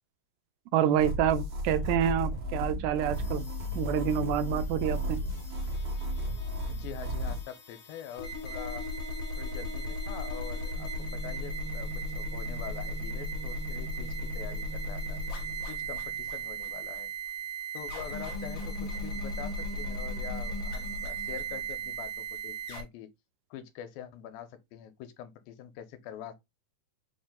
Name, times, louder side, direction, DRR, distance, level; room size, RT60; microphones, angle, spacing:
voice 1, 0.7-3.5 3.8-5.2, right 10 dB, 85° right, 2.4 m, -28 dB
sound 1, 1.0-7.4, left 1 dB, 65° right, 1.4 m, -33 dB
sound 2, 3.1-22.8, right 1 dB, 50° left, 1.5 m, -37 dB
voice 2, 6.7-8.9 9.4-11.9 12.2-15.2 15.7-17.1 17.7-23.1 23.5-26.3, left 10 dB, 90° left, 2.5 m, -44 dB
5.7 x 2.6 x 3.6 m
omnidirectional pair, 4.2 m